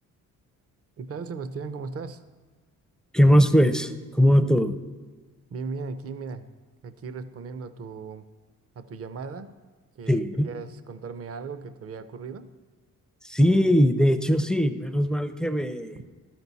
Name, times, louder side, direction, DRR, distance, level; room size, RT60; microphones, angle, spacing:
voice 1, 1.0-2.2 5.5-6.5 6.8-8.3 8.8-9.5 10.0-12.5 15.9-16.0, right 4 dB, 45° right, 12 dB, 0.6 m, -37 dB
voice 2, 3.1-4.7 10.1-10.5 13.2-16.0, equal, ahead, 10 dB, 0.5 m, -20 dB
12.0 x 6.0 x 4.1 m, 1.4 s
cardioid pair, 75°, 35 cm